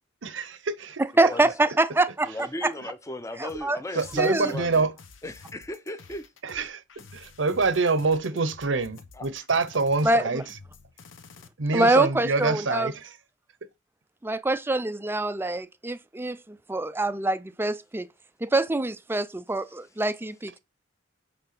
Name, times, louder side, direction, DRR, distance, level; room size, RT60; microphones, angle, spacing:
voice 1, 0.2-1.0 3.9-4.9 6.4-6.8 7.1-10.4 11.6-13.1, right 4 dB, 75° right, 0.8 m, -26 dB
voice 2, 1.0-2.3 2.6-2.7 3.4-3.8 4.2-4.5 10.0-10.4 11.7-12.9 14.2-18.1 18.4-20.6, right 2 dB, 10° right, 0.4 m, -25 dB
voice 3, 2.2-4.9 5.2-6.3 9.1-9.3, left 1 dB, 15° left, 0.7 m, -36 dB
sound 1, 3.5-11.5, left 4 dB, 90° left, 0.9 m, -50 dB
8.9 x 3.4 x 5.9 m
head